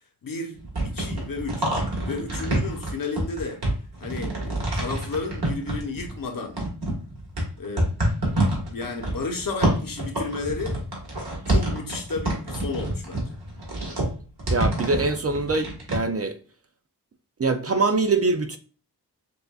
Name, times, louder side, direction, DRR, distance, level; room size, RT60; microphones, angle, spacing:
voice 1, 0.2-1.7 2.0-3.6 4.0-6.6 7.6-8.1 8.7-10.8 11.4-13.4, left 3 dB, 55° left, 1.0 m, -32 dB
sound 1, 0.5-6.2 6.6-16.0, right 1 dB, 65° right, 1.8 m, -27 dB
voice 2, 14.5-16.4 17.4-18.6, right 3 dB, 40° right, 0.4 m, -23 dB
6.7 x 2.5 x 2.3 m
wide cardioid pair, 80°, 40 cm